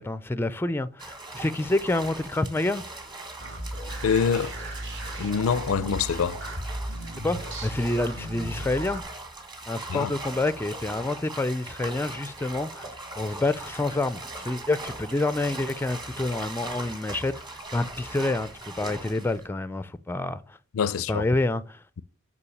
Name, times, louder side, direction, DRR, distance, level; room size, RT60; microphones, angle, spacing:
voice 1, 0.0-2.8 7.2-9.0 9.7-12.9 13.2-20.6 21.1-21.8, left 2 dB, 10° left, 0.4 m, -28 dB
sound 1, 1.0-19.5, right 2 dB, 20° right, 1.4 m, -40 dB
sound 2, 3.4-9.0, right 1 dB, 60° right, 2.0 m, -36 dB
voice 2, 4.0-4.6 5.2-6.4 9.9-10.1 20.7-21.2, left 6 dB, 80° left, 0.4 m, -25 dB
6.9 x 5.2 x 7.0 m
head